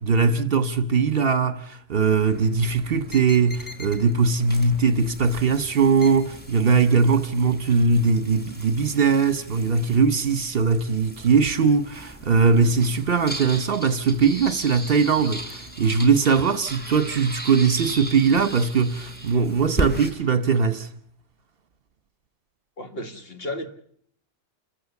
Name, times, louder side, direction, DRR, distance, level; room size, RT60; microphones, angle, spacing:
voice 1, 0.0-20.9, right 5 dB, 55° right, 1.2 m, -20 dB
sound 1, 2.2-20.1, right 1 dB, 10° left, 3.4 m, -37 dB
voice 2, 22.8-23.7, left 1 dB, 55° left, 1.9 m, -33 dB
28.5 x 15.0 x 7.1 m
omnidirectional pair, 1.2 m